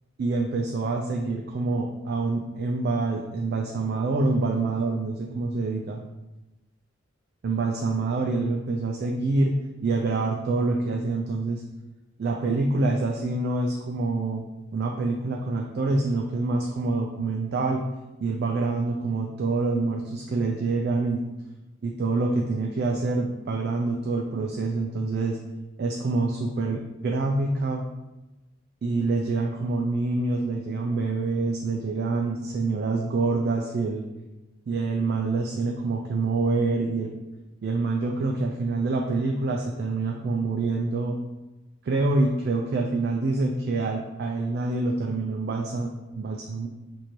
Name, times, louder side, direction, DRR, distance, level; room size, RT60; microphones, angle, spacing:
voice 1, 0.2-6.0 7.4-11.6 12.2-14.4 14.7-17.8 18.2-21.2 21.8-25.4 25.8-27.8 28.8-34.0 34.7-37.1 37.6-41.2 41.8-45.9 46.2-46.7, right 3 dB, 55° right, 1 dB, 0.3 m, -26 dB
3.0 x 2.6 x 4.3 m, 1.0 s
head